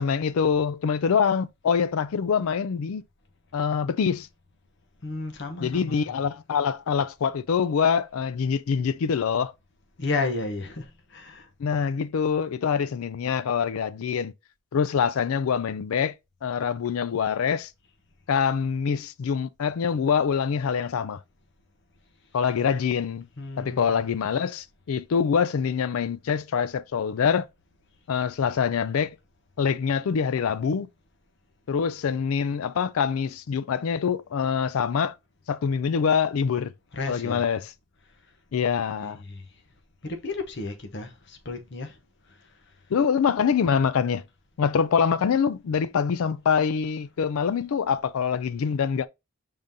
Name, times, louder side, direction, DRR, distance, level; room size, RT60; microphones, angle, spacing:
voice 1, 0.0-3.0 3.5-4.3 5.6-9.5 11.6-14.3 14.7-16.1 16.4-17.7 18.3-21.2 22.3-23.3 23.6-27.5 28.1-29.2 29.6-30.9 31.7-35.1 35.5-36.7 37.1-37.7 38.5-39.2 42.9-44.2 44.6-49.1, left 6 dB, 75° left, 0.4 m, -25 dB
voice 2, 5.0-6.3 10.0-11.5 23.4-24.1 36.9-37.4 39.0-39.4 40.0-42.0, left 3 dB, 55° left, 0.8 m, -33 dB
5.0 x 3.7 x 2.7 m
head